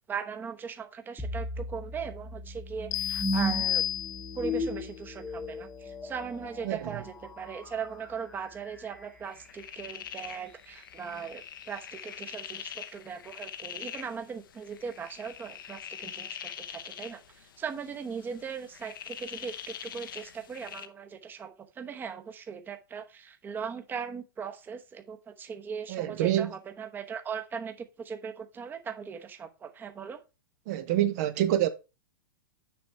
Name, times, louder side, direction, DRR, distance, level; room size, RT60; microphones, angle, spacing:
voice 1, 0.1-3.8 4.3-30.2, right 6 dB, 15° right, 0.9 m, -39 dB
sound 1, 1.2-10.3, equal, 5° left, 1.1 m, -37 dB
sound 2, 2.9-4.6, left 12 dB, 30° left, 0.6 m, -31 dB
sound 3, 9.2-20.9, left 9 dB, 70° left, 1.0 m, -44 dB
voice 2, 25.9-26.5 30.7-31.7, right 12 dB, 50° right, 0.8 m, -26 dB
7.0 x 5.2 x 4.6 m
hypercardioid pair, 120°, 11 cm